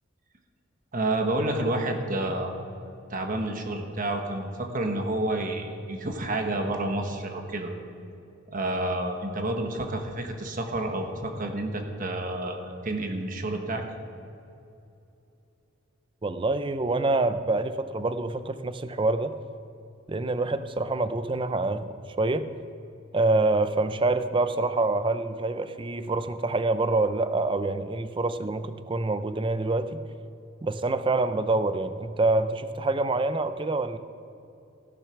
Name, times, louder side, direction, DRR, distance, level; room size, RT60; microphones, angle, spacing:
voice 1, 0.9-2.5 3.1-7.7 8.5-13.8, right 1 dB, 40° right, 4 dB, 1.2 m, -29 dB
voice 2, 16.2-19.3 20.1-21.9 22.2-22.5 23.1-30.0 30.6-34.0, right 2 dB, 25° right, 12 dB, 0.5 m, -26 dB
15.5 x 6.7 x 5.9 m, 2.7 s
head